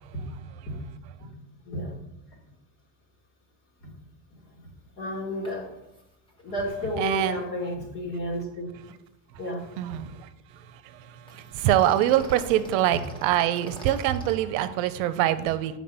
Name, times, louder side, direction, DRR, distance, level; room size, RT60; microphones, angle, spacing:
voice 1, 1.6-1.9 3.8-3.9 4.3-4.5 5.0-5.8 6.4-8.9 9.4-10.0, equal, 50° left, 2.5 m, -32 dB
sound 1, 5.4-5.5 5.8-6.0 6.3-6.4 11.3-14.3, equal, 10° left, 1.1 m, -45 dB
voice 2, 7.0-7.4 9.8-15.8, right 12 dB, 70° right, 0.7 m, -25 dB
7.6 x 4.6 x 5.4 m
cardioid pair, 155°, 41 cm